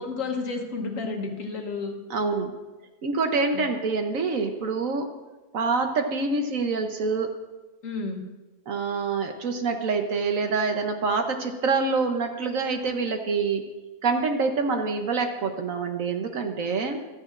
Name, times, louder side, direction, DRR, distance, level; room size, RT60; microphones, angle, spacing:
voice 1, 0.0-2.0 3.4-3.7 7.8-8.3, left 4 dB, 60° left, 3 dB, 1.5 m, -31 dB
voice 2, 2.1-2.5 3.0-5.1 5.5-7.3 8.7-13.6 14.0-17.0, right 4 dB, 60° right, 5 dB, 1.2 m, -26 dB
15.0 x 13.0 x 2.5 m, 1.1 s
omnidirectional pair, 1.7 m